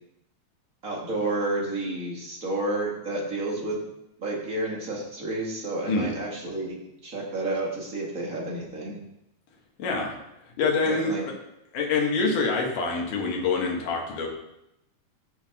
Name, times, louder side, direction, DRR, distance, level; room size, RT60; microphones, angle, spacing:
voice 1, 0.8-3.8 4.2-9.0 10.8-11.2, right 2 dB, 30° right, -3 dB, 2.1 m, -30 dB
voice 2, 9.8-10.2 10.6-11.3 11.7-14.3, left 4 dB, 85° left, 0 dB, 3.1 m, -26 dB
14.5 x 6.3 x 3.7 m, 0.85 s
omnidirectional pair, 3.5 m